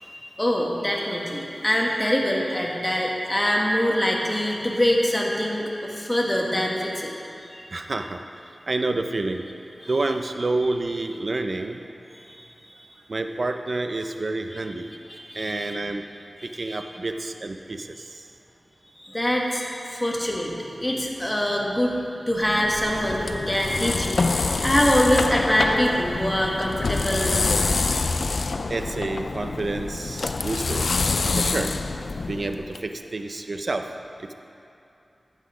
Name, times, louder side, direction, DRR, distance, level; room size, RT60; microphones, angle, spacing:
voice 1, 0.0-7.1 7.5-7.6 9.8-9.9 12.1-12.4 14.5-14.6 15.1-15.7 16.4-16.8 18.9-28.0, equal, 15° left, -2 dB, 1.7 m, -24 dB
voice 2, 7.7-9.4 9.8-11.8 13.1-14.9 15.3-16.1 16.4-18.3 28.7-30.8 31.4-31.7 32.3-33.9 34.2-34.3, right 2 dB, 60° right, 6 dB, 0.6 m, -29 dB
sound 1, 22.4-32.8, left 3 dB, 80° left, 0.4 m, -26 dB
12.0 x 8.3 x 5.0 m, 2.7 s
wide cardioid pair, 55°, 0 cm